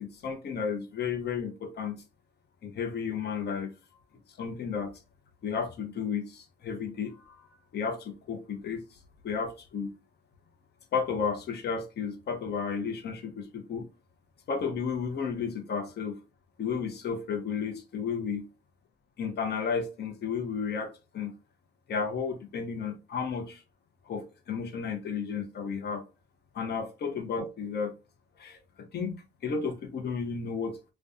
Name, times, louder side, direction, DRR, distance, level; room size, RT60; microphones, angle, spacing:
voice 1, 0.0-2.0 2.6-3.7 4.4-4.9 5.4-7.4 7.7-8.8 9.2-9.9 10.9-13.9 14.5-16.2 16.6-18.4 19.2-21.3 21.9-23.6 24.1-26.0 26.5-27.9 28.4-29.2 29.4-30.8, left 6 dB, 55° left, 0.7 m, -33 dB
2.5 x 2.2 x 2.3 m
cardioid pair, 90°, 20 cm